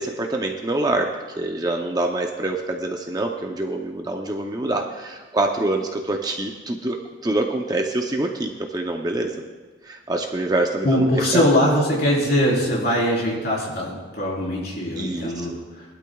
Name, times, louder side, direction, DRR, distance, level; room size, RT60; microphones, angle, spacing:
voice 1, 0.0-7.0 7.2-9.4 9.8-11.4 15.0-15.5, right 2 dB, 20° right, 2 dB, 0.6 m, -25 dB
voice 2, 10.8-15.6, equal, 50° left, -5 dB, 4.0 m, -21 dB
20.5 x 12.0 x 2.3 m, 1.3 s
head